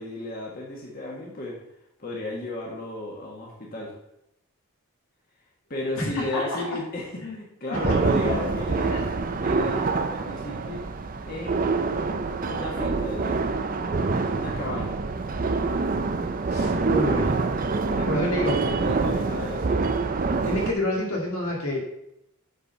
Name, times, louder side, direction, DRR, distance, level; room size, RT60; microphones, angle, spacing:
voice 1, 0.0-1.6 2.0-3.9 5.7-8.9 9.4-10.9 11.3-11.6 12.3-13.5 14.3-15.0 17.8-19.9, left 1 dB, 40° left, -3 dB, 1.5 m, -34 dB
voice 2, 6.0-6.8 7.2-7.4 7.7-7.9 8.3-8.4 8.9-9.0 16.5-17.3 18.1-18.5 20.5-21.8, left 1 dB, 80° left, -1 dB, 2.2 m, -28 dB
sound 1, 7.7-20.7, right 3 dB, 40° right, 0.5 m, -26 dB
8.1 x 4.4 x 5.5 m, 0.81 s
head